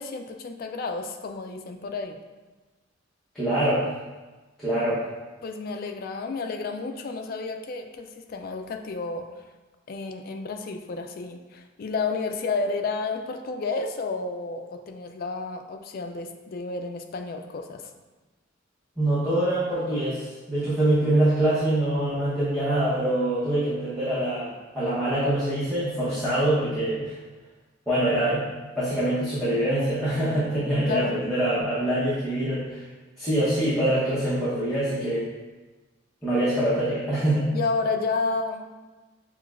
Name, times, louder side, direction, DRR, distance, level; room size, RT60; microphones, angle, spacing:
voice 1, 0.0-2.2 5.4-9.5 9.9-17.9 30.9-31.2 37.5-38.7, left 4 dB, 45° left, 5 dB, 0.3 m, -31 dB
voice 2, 3.3-3.9 4.6-5.0 19.0-24.5 24.7-27.1 27.9-28.4 28.7-32.8 33.2-35.3 36.2-37.5, right 1 dB, ahead, -13 dB, 0.9 m, -24 dB
6.3 x 2.3 x 2.4 m, 1.2 s
head